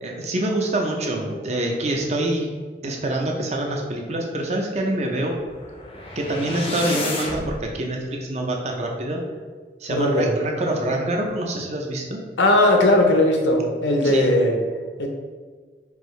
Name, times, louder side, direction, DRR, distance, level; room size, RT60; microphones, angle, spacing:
voice 1, 0.0-2.5 2.8-5.4 6.2-9.2 9.8-12.2 14.0-14.3, right 1 dB, 35° right, 1 dB, 0.5 m, -26 dB
sound 1, 5.4-7.6, left 2 dB, 30° left, 0.4 m, -31 dB
voice 2, 9.9-10.3 12.4-14.6 15.0-15.1, left 1 dB, 90° left, 2 dB, 0.7 m, -18 dB
4.6 x 2.6 x 3.1 m, 1.5 s
head